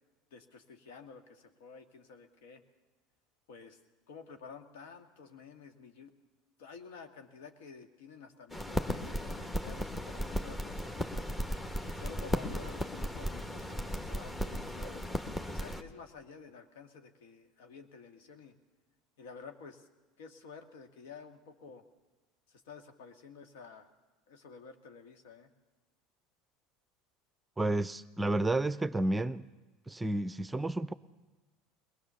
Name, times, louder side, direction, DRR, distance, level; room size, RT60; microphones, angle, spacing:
voice 1, 0.3-2.6 3.5-3.8 4.1-6.1 6.6-11.1 11.8-15.0 15.5-18.5 19.2-19.9 20.2-21.8 22.5-23.9 24.3-25.5, left 5 dB, 70° left, 1.8 m, -51 dB
sound 1, 8.5-15.8, left 1 dB, 15° left, 1.6 m, -36 dB
voice 2, 27.6-29.4 29.9-30.9, right 2 dB, 10° right, 0.6 m, -31 dB
21.5 x 20.0 x 6.9 m
hypercardioid pair, 75°, 0 cm